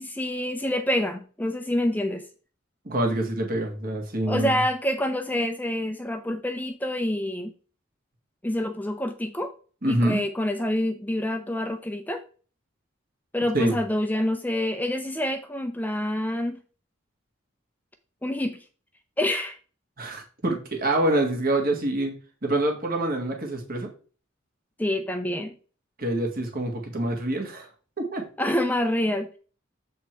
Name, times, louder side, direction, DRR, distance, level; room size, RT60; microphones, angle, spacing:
voice 1, 0.0-2.2 4.3-7.5 8.4-9.5 9.9-12.2 13.3-16.6 18.2-18.6 19.2-19.6 24.8-25.5 28.4-29.3, left 1 dB, 10° left, 7 dB, 0.5 m, -27 dB
voice 2, 2.9-4.6 9.8-10.2 13.5-13.8 20.0-22.1 22.4-23.9 26.0-27.7 28.0-28.3, right 1 dB, 45° right, 2 dB, 1.9 m, -26 dB
7.6 x 4.3 x 4.5 m, 0.38 s
head